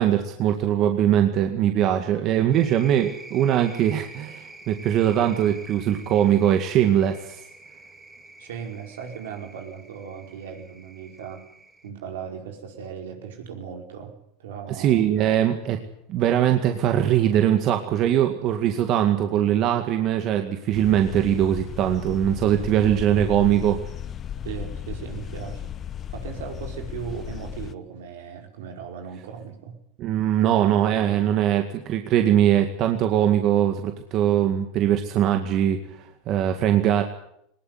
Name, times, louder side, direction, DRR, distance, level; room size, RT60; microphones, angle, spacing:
voice 1, 0.0-7.4 14.7-15.8 16.1-23.8 30.0-37.0, right 10 dB, 50° right, 6 dB, 2.1 m, -21 dB
sound 1, 2.5-11.9, right 2 dB, 10° right, 4.5 m, -46 dB
voice 2, 8.4-11.4 11.8-15.1 24.4-25.7 26.1-29.8 30.4-31.3, right 7 dB, 80° right, 3 dB, 5.1 m, -37 dB
sound 2, 20.7-27.7, left 9 dB, 35° left, 0.9 m, -35 dB
19.5 x 18.5 x 9.6 m, 0.74 s
hypercardioid pair, 105°, 0 cm